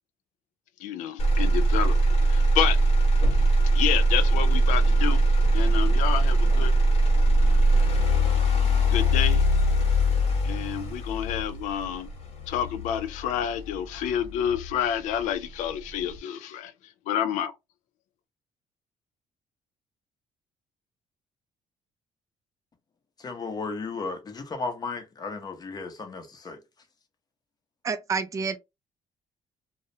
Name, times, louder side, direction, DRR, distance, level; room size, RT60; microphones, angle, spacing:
voice 1, 0.8-2.8 3.7-5.2 5.5-6.7 8.9-9.4 10.4-12.1 12.5-16.7 17.1-17.5, left 10 dB, 90° left, 0.4 m, -29 dB
Motor vehicle (road), 1.2-15.2 15.7-16.2, right 1 dB, 55° left, 0.9 m, -22 dB
voice 2, 23.2-26.6, left 4 dB, 30° left, 0.7 m, -34 dB
voice 3, 27.8-28.6, right 5 dB, 25° right, 0.3 m, -28 dB
2.3 x 2.0 x 2.6 m
cardioid pair, 105°, 12 cm